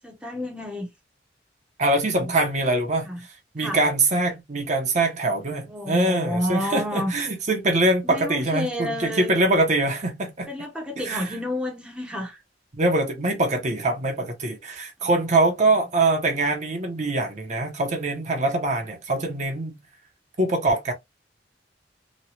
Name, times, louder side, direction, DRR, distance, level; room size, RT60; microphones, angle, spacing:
voice 1, 0.0-0.9 2.1-2.3 3.0-3.2 3.6-3.8 5.7-7.1 8.0-9.4 10.5-12.4, left 1 dB, 5° right, 0.7 m, -30 dB
voice 2, 1.8-3.1 3.5-10.5 11.0-11.4 12.7-19.8 20.4-20.9, right 2 dB, 40° right, 0.8 m, -23 dB
3.0 x 2.2 x 2.7 m
head